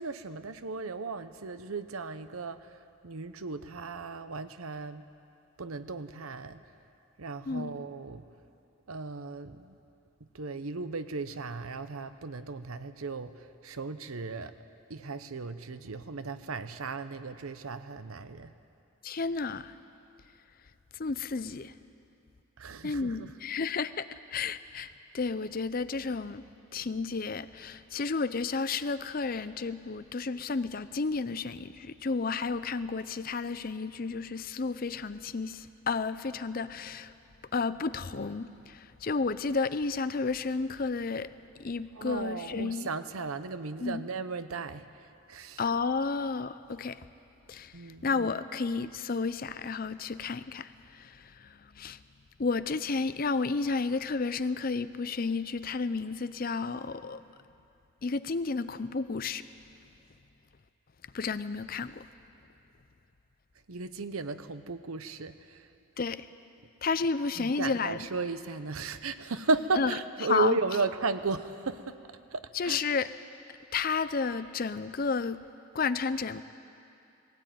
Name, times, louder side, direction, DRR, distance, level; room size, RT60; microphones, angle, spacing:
voice 1, 0.0-5.0 5.6-6.6 7.2-8.2 8.9-9.8 10.3-14.5 14.9-18.5 22.6-23.3 41.9-45.7 47.7-48.2 63.7-65.7 67.3-72.0 72.3-72.8, right 3 dB, 85° right, 11 dB, 0.9 m, -35 dB
voice 2, 7.5-7.8 19.0-19.7 21.0-21.7 22.8-26.4 26.7-37.1 37.5-41.3 41.6-42.9 43.8-44.0 45.6-47.0 47.5-52.0 52.4-57.2 58.0-59.4 61.1-62.0 66.0-66.3 66.8-68.1 69.8-69.9 70.3-70.6 72.5-73.1 73.7-75.4 75.7-76.4, left 4 dB, 40° left, 13 dB, 0.5 m, -32 dB
19.0 x 16.5 x 9.2 m, 2.6 s
head